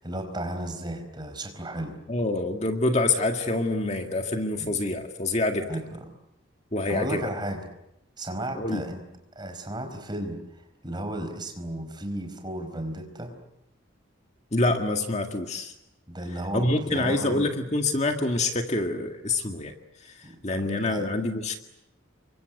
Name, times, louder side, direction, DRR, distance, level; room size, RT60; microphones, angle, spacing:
voice 1, 0.0-2.0 4.6-4.8 5.7-6.1 6.9-7.7 8.2-9.0 9.3-13.4 16.1-17.5 20.2-21.1, right 1 dB, 20° right, 6 dB, 4.7 m, -34 dB
voice 2, 2.1-5.7 6.7-7.2 8.6-8.8 14.5-15.7 16.5-19.7 20.0-21.6, left 2 dB, 35° left, 4 dB, 1.9 m, -26 dB
29.5 x 24.5 x 8.0 m, 0.84 s
head